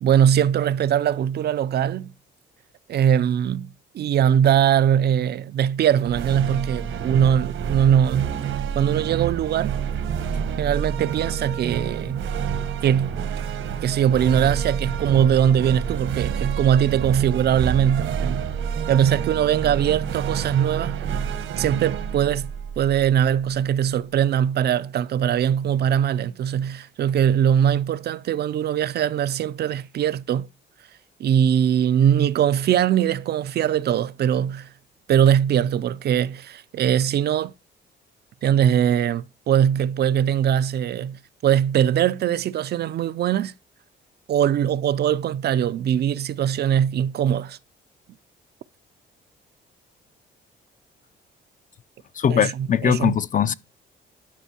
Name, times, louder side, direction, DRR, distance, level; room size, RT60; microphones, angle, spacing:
voice 1, 0.0-2.1 2.9-8.4 8.7-9.8 10.6-12.2 12.8-13.2 13.8-18.5 18.9-21.0 21.6-30.5 31.2-34.7 35.1-37.5 38.4-43.5 44.3-47.6 52.3-53.2, right 9 dB, 55° right, 0.4 m, -21 dB
sound 1, 6.0-23.5, right 7 dB, 80° right, 1.1 m, -28 dB
voice 2, 52.2-53.5, left 8 dB, 40° left, 0.5 m, -21 dB
11.5 x 5.4 x 2.9 m
cardioid pair, 90°, 20 cm